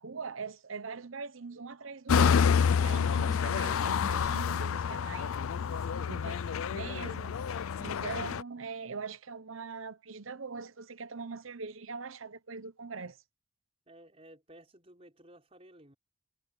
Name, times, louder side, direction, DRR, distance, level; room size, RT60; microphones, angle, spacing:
voice 1, 0.0-5.6 6.1-13.2, right 4 dB, 75° right, 1.0 m, -42 dB
sound 1, 2.1-8.4, left 6 dB, 85° left, 0.4 m, -28 dB
voice 2, 5.7-6.1 13.9-15.9, right 1 dB, 30° right, 5.5 m, -55 dB
head